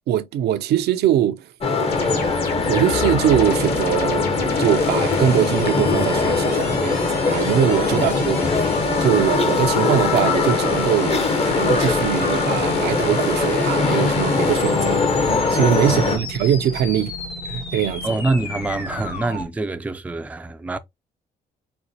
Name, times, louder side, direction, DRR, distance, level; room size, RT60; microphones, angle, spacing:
voice 1, 0.1-1.5 2.6-8.4 9.0-17.1 17.5-18.1, right 10 dB, 75° right, 0.4 m, -22 dB
sound 1, 1.6-16.2, left 4 dB, 35° left, 0.8 m, -21 dB
sound 2, 1.9-19.5, left 3 dB, 65° left, 1.5 m, -33 dB
voice 2, 15.8-16.2 18.0-20.8, right 2 dB, 10° right, 0.3 m, -26 dB
4.1 x 2.1 x 2.7 m
supercardioid pair, 75°, 17 cm